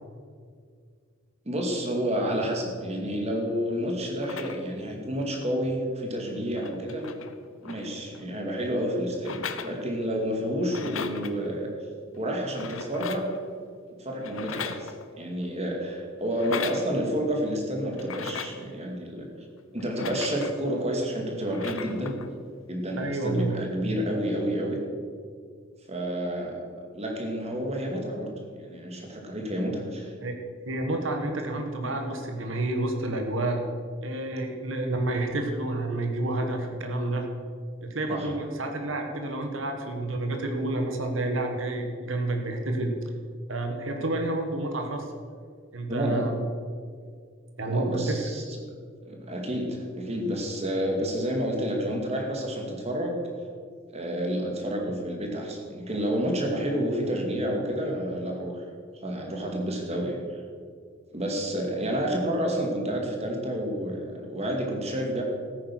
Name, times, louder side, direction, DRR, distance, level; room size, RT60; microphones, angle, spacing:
voice 1, 1.5-7.1 7.6-11.7 12.1-13.3 14.0-19.3 19.7-22.2 22.7-24.8 25.9-30.1 38.1-38.3 45.9-46.3 47.6-48.4 49.0-53.2 53.9-58.6 59.0-60.4 61.1-65.2, equal, 30° right, 1 dB, 2.3 m, -30 dB
sound 1, 4.2-4.8 6.0-6.1 6.3-8.3 9.1-10.2 10.5-11.3 12.4-13.4 14.2-15.3 16.3-16.9 17.9-18.7 19.8-20.7 21.4-22.3 23.3-23.4, left 6 dB, 85° left, 0.9 m, -38 dB
voice 2, 23.0-23.6 30.2-30.4 30.6-33.6 34.0-37.3 37.8-42.9 43.5-45.3 45.7-46.4 47.6-48.2, right 2 dB, 75° right, 4 dB, 1.6 m, -29 dB
15.0 x 9.1 x 6.1 m, 2.1 s
head